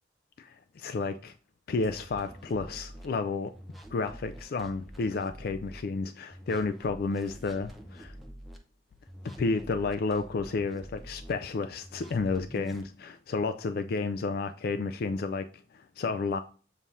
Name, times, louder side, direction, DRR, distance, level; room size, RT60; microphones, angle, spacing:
voice 1, 0.4-1.3 1.7-3.5 3.9-8.1 9.4-16.4, left 4 dB, 60° left, 0.4 m, -31 dB
sound 1, 1.8-3.1 3.5-5.8 6.3-8.6 9.1-11.3 11.8-12.9, equal, ahead, 0.7 m, -47 dB
7.3 x 2.8 x 4.7 m
head